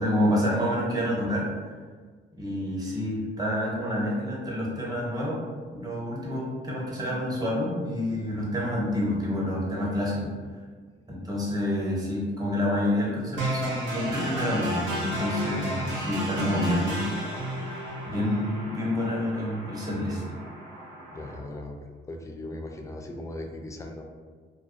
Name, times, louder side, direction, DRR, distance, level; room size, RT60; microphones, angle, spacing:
voice 1, 0.0-1.5 2.4-5.4 5.7-10.3 11.1-17.1 17.4-20.2, left 1 dB, 20° right, -5 dB, 0.8 m, -28 dB
sound 1, 13.4-21.4, right 1 dB, 80° right, 1.0 m, -32 dB
voice 2, 21.1-24.0, left 1 dB, 15° left, 2 dB, 0.3 m, -38 dB
2.3 x 2.3 x 2.5 m, 1.5 s
cardioid pair, 90°, 20 cm